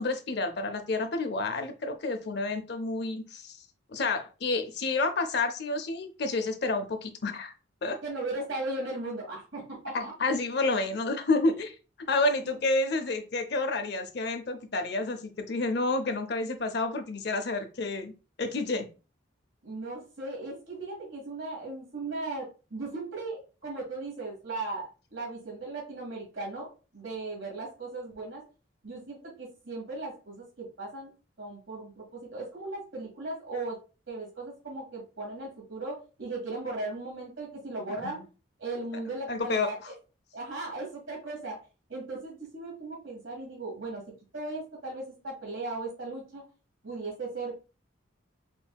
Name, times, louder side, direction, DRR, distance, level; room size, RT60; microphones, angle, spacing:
voice 1, 0.0-3.6 3.9-7.5 7.8-8.0 9.9-11.8 12.1-18.1 18.4-18.9 37.9-38.2 39.3-39.9, left 3 dB, 55° left, 0.6 m, -29 dB
voice 2, 8.0-10.1 12.4-12.5 19.6-28.4 28.8-31.1 31.4-33.8 34.1-38.2 38.6-39.8 40.3-41.6 41.9-44.0 44.3-46.4 46.8-47.6, right 2 dB, 75° right, 2.1 m, -37 dB
5.3 x 2.7 x 2.3 m
head